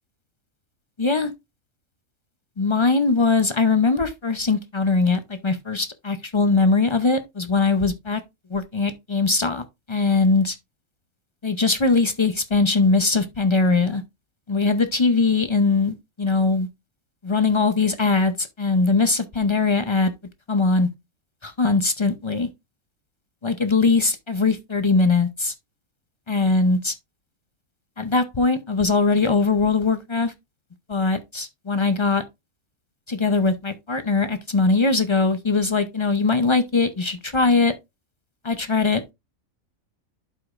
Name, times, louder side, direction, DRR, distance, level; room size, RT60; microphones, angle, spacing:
voice 1, 1.0-1.3 2.6-8.2 8.5-10.6 11.4-14.0 14.5-16.7 17.2-20.1 20.5-20.9 21.4-22.5 23.4-25.5 26.3-26.9 28.0-30.3 30.9-32.2 33.1-37.7 38.4-39.1, left 3 dB, 45° left, 0.3 m, -21 dB
11.5 x 4.9 x 2.4 m
omnidirectional pair, 1.5 m